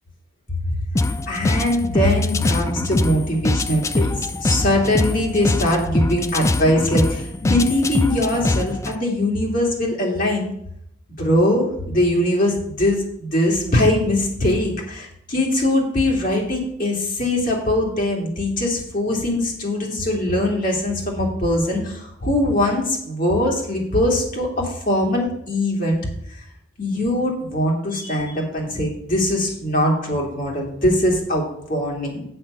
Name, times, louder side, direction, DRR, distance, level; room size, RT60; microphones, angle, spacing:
sound 1, 1.0-9.0, left 2 dB, 15° left, 0.3 m, -23 dB
voice 1, 1.3-10.5 11.2-26.0 26.3-26.4 26.8-32.2, left 1 dB, 45° left, -2 dB, 2.6 m, -21 dB
8.4 x 7.8 x 5.5 m, 0.75 s
head